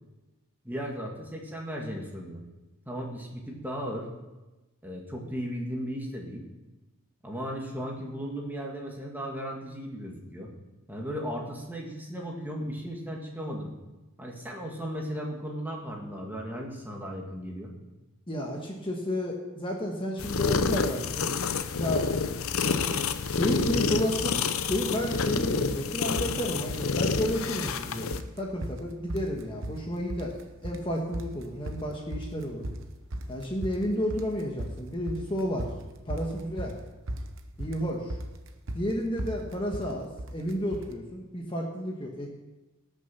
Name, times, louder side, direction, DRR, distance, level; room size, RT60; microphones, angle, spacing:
voice 1, 0.6-2.4 2.9-4.1 4.8-6.5 7.2-10.5 10.9-13.7 14.2-17.7, equal, 10° right, -1 dB, 1.8 m, -36 dB
voice 2, 18.3-21.3 21.7-22.1 23.3-24.4 24.7-28.1 28.4-30.3 30.6-32.7 33.3-35.7 36.1-36.7 37.6-38.2 38.7-42.3, equal, 25° left, 0 dB, 1.3 m, -31 dB
sound 1, 20.2-28.2, left 5 dB, 70° left, 0.7 m, -28 dB
sound 2, 22.8-23.0 23.3-23.9 24.2-24.9 25.2-25.4 25.7-25.9 26.2-26.9 27.2-27.8 28.1-40.9, right 1 dB, 60° right, 1.0 m, -37 dB
18.5 x 6.6 x 5.7 m, 1.1 s
head